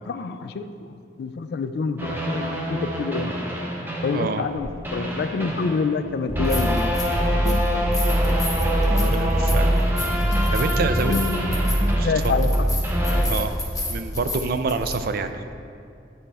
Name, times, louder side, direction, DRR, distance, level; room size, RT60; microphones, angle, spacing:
voice 1, 0.1-3.4 4.0-7.0 7.4-7.9 8.2-8.3 9.0-9.4 10.8-12.5, left 4 dB, 60° left, 10 dB, 0.3 m, -28 dB
sound 1, 2.0-4.5 4.8-13.2, equal, 10° right, 0.7 m, -23 dB
sound 2, 4.6-4.7 6.2-7.2 7.5-15.0, left 1 dB, 20° left, 1.0 m, -33 dB
voice 2, 8.9-10.0 10.5-11.2 12.0-12.3 13.3-13.5 13.9-15.5, right 4 dB, 55° right, 9 dB, 0.4 m, -27 dB
10.5 x 4.3 x 3.4 m, 2.4 s
head